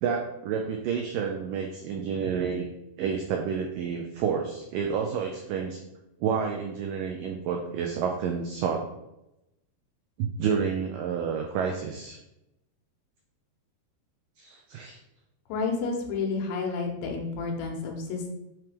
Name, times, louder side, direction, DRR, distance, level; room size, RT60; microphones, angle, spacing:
voice 1, 0.0-2.7 3.0-5.8 6.2-8.9 10.2-12.2 14.4-15.0, right 6 dB, 90° right, 2 dB, 1.9 m, -29 dB
voice 2, 15.5-18.3, left 4 dB, 90° left, 1 dB, 3.4 m, -30 dB
9.2 x 3.1 x 5.0 m, 0.90 s
omnidirectional pair, 4.8 m